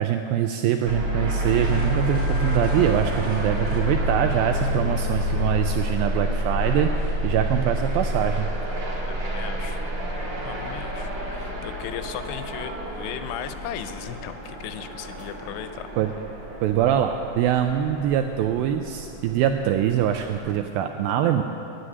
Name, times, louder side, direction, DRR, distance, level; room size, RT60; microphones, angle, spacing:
voice 1, 0.0-8.5 16.0-16.1 16.6-21.4, right 10 dB, 85° right, 6 dB, 2.0 m, -23 dB
sound 1, 0.9-20.6, equal, 45° right, 2.2 m, -29 dB
sound 2, 1.5-4.1, equal, 25° right, 1.2 m, -40 dB
voice 2, 9.1-9.8 10.2-15.9, left 10 dB, 85° left, 10 dB, 2.7 m, -37 dB
9.8 x 9.1 x 9.5 m, 2.6 s
omnidirectional pair, 4.7 m